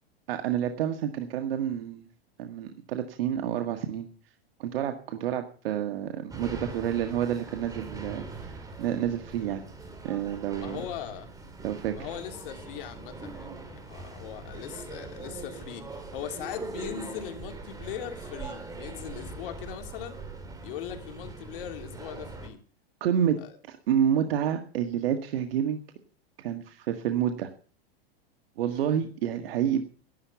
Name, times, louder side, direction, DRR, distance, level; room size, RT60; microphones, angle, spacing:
voice 1, 0.3-2.1 2.4-4.1 4.6-9.6 10.0-10.8 11.6-12.0 23.0-23.4 23.7-25.8 26.4-27.5 28.6-29.8, right 9 dB, 70° right, 6 dB, 1.7 m, -29 dB
sound 1, 6.3-22.5, right 3 dB, 10° right, 2.4 m, -42 dB
voice 2, 10.6-11.3 11.9-20.2 20.6-22.6 23.4-23.6 28.7-29.0, left 10 dB, 60° left, 5 dB, 2.9 m, -40 dB
11.5 x 11.5 x 7.0 m, 0.42 s
supercardioid pair, 140°, 30 cm